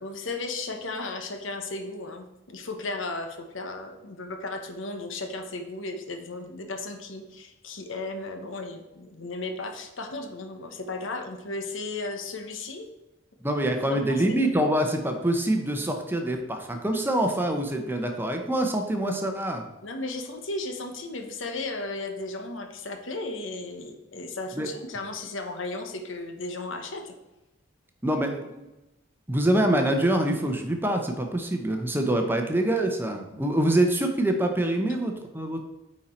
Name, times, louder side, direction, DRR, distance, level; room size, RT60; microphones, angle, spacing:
voice 1, 0.0-12.9 13.8-14.4 19.8-27.2 34.9-35.0, left 2 dB, 70° left, 6 dB, 1.0 m, -35 dB
voice 2, 13.4-19.7 24.6-24.7 28.0-28.7 29.3-35.6, right 1 dB, 10° right, 4 dB, 0.8 m, -25 dB
9.1 x 4.3 x 4.3 m, 0.99 s
head